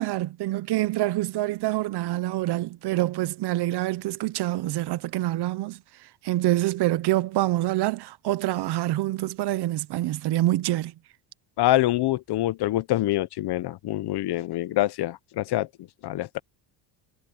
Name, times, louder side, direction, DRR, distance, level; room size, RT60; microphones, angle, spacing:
voice 1, 0.0-5.8 6.2-10.9, right 16 dB, 60° right, 0.7 m, -26 dB
voice 2, 11.6-15.7 16.0-16.4, left 15 dB, 55° left, 0.8 m, -25 dB
cardioid pair, 145°, 46 cm